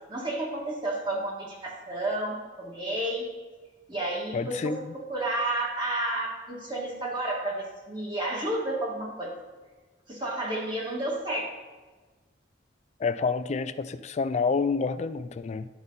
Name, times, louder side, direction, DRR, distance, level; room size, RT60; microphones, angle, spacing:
voice 1, 0.1-3.3 3.9-4.7 5.1-9.3 10.1-11.5, right 1 dB, 25° right, -3 dB, 1.9 m, -31 dB
voice 2, 4.3-4.9 13.0-15.7, left 4 dB, 35° left, 13 dB, 0.3 m, -28 dB
11.5 x 5.5 x 4.0 m, 1.3 s
head